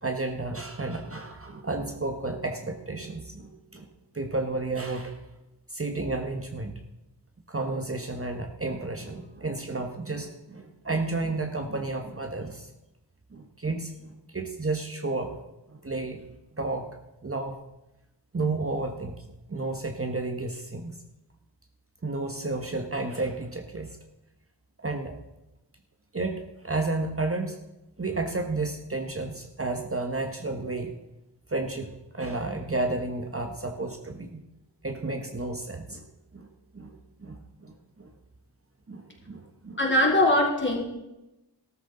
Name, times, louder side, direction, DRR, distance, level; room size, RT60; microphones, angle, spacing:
voice 1, 0.0-3.9 4.1-5.2 5.7-6.8 7.5-12.7 13.3-16.3 16.5-17.6 18.3-19.2 19.5-20.9 22.0-24.0 24.8-25.2 26.1-27.6 28.0-30.9 31.5-34.4 34.8-36.0 36.3-36.5 36.7-38.1 38.9-39.8, right 2 dB, 30° right, 4 dB, 1.1 m, -32 dB
voice 2, 39.8-40.8, left 1 dB, 25° left, -1 dB, 3.2 m, -21 dB
13.5 x 13.0 x 3.9 m, 0.96 s
wide cardioid pair, 80°, 43 cm